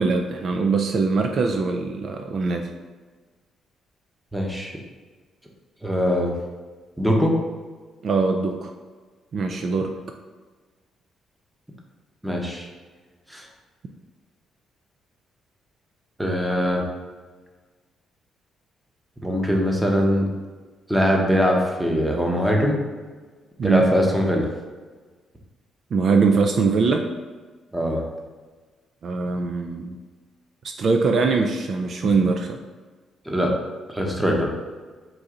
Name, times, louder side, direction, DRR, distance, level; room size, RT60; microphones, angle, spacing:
voice 1, 0.0-2.7 8.0-8.7 9.3-9.9 23.6-23.8 25.9-27.1 29.0-30.0 30.8-32.6, right 4 dB, 55° right, 4 dB, 0.3 m, -22 dB
voice 2, 4.3-4.8 5.8-6.3 7.0-7.3 12.2-12.7 13.3-13.4 16.2-16.8 19.2-20.2 20.9-22.8 23.6-24.5 27.7-28.0 33.3-33.5 33.9-34.5, equal, 5° right, 0 dB, 0.8 m, -21 dB
4.5 x 2.7 x 3.7 m, 1.4 s
cardioid pair, 90°, 0 cm